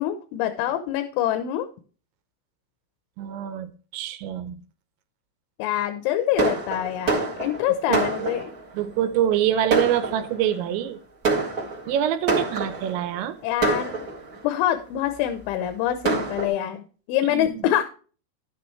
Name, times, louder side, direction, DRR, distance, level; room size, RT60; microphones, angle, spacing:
voice 1, 0.0-1.7 5.6-8.5 13.4-14.0 14.4-17.8, left 12 dB, 90° left, 3.3 m, -25 dB
voice 2, 3.2-4.6 7.9-8.3 8.7-11.0 11.9-13.4 17.3-17.7, right 10 dB, 80° right, 3.1 m, -25 dB
Fireworks, 6.4-8.7 9.3-9.4 9.7-10.6 11.2-13.0 13.6-14.5 15.2-15.3 15.6-15.7 16.0-16.5, right 3 dB, 50° right, 1.0 m, -26 dB
11.0 x 9.1 x 3.2 m
omnidirectional pair, 5.3 m